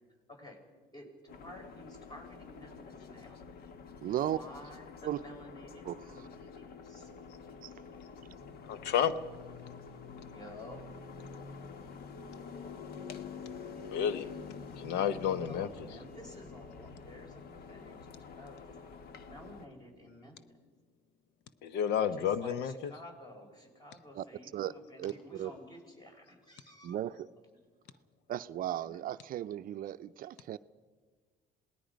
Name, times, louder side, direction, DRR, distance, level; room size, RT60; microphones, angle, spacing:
voice 1, 0.3-0.6 0.9-1.1 1.4-3.4 4.3-7.1 10.2-10.8 15.4-18.0 18.4-18.8 19.2-20.4 22.2-27.0 28.9-29.0, left 1 dB, 25° left, 4.5 m, -51 dB
sound 1, 1.3-19.7, left 5 dB, 65° left, 1.4 m, -47 dB
voice 2, 4.0-4.4 5.0-5.2 5.8-6.3 7.6-7.7 24.1-24.7 25.0-25.5 26.8-27.3 28.3-30.6, right 12 dB, 55° right, 0.5 m, -36 dB
voice 3, 8.7-9.1 13.8-14.3 14.8-15.7 21.6-22.9, left 9 dB, 85° left, 0.9 m, -30 dB
27.5 x 19.0 x 5.2 m
cardioid pair, 110°, 17 cm